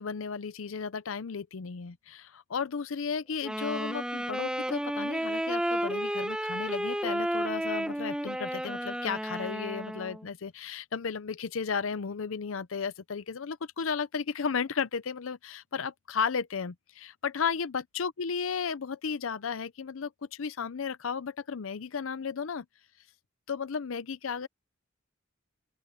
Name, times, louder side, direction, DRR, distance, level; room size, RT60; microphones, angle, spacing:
voice 1, 0.0-22.7 23.5-24.5, left 6 dB, 80° left, 0.6 m, -34 dB
Wind instrument woodwind instrument, 3.4-10.3, equal, 5° right, 1.1 m, -32 dB
open air
head